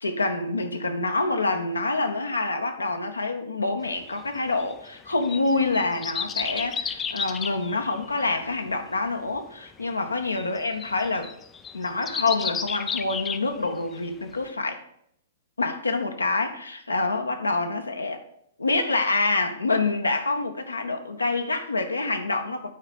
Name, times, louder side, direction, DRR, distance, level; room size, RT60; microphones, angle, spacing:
voice 1, 0.0-11.3 11.7-14.8 15.6-18.2 18.6-22.7, left 3 dB, 80° left, 5 dB, 0.9 m, -26 dB
sound 1, 4.1-14.1 14.5-14.6, left 6 dB, 15° left, 0.4 m, -33 dB
9.0 x 4.9 x 4.8 m, 0.71 s
figure-of-eight pair, 110°, 0 cm